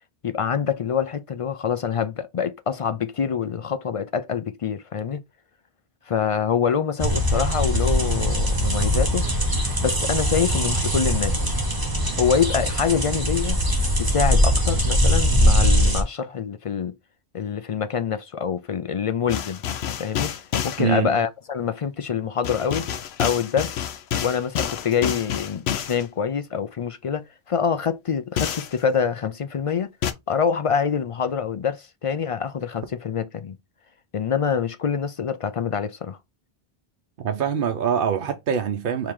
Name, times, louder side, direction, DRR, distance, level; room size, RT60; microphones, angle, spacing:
voice 1, 0.2-5.2 6.1-9.3 9.8-11.4 12.2-13.6 14.0-16.9 17.3-19.6 20.0-20.3 20.6-22.9 23.2-23.9 24.2-29.9 30.3-33.6 34.1-36.2, left 7 dB, 55° left, 0.3 m, -25 dB
sound 1, 7.0-16.0, equal, 20° right, 1.1 m, -21 dB
sound 2, 19.3-20.8 22.4-26.0 28.4-28.8 30.0-30.1, left 9 dB, 90° left, 0.9 m, -28 dB
voice 2, 20.8-21.1 37.2-39.1, right 7 dB, 60° right, 0.8 m, -24 dB
4.8 x 2.8 x 3.6 m
omnidirectional pair, 1.1 m